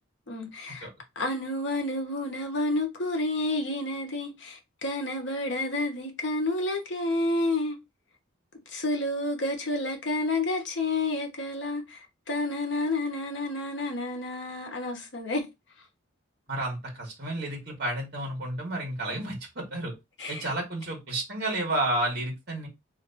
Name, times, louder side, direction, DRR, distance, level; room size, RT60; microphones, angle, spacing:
voice 1, 0.3-0.9 1.2-7.8 8.7-15.5 20.2-20.5, left 2 dB, 60° left, 0.9 m, -30 dB
voice 2, 16.5-19.9 20.3-22.7, right 1 dB, 50° right, 1.5 m, -31 dB
3.2 x 2.9 x 2.7 m
head